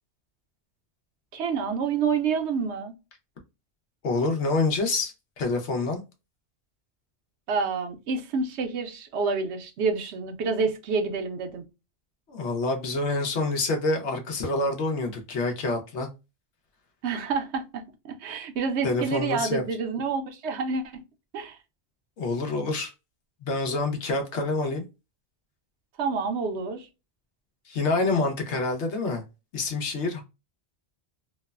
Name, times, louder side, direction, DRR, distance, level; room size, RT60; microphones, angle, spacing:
voice 1, 1.3-2.9 7.5-11.6 17.0-21.0 21.3-21.6 26.0-26.9, right 5 dB, 80° right, 0.9 m, -28 dB
voice 2, 4.0-6.0 12.3-16.1 18.8-19.6 22.2-22.9 23.4-24.8 27.7-29.2 29.5-30.2, left 3 dB, 85° left, 1.1 m, -27 dB
3.1 x 2.1 x 2.2 m
omnidirectional pair, 1.1 m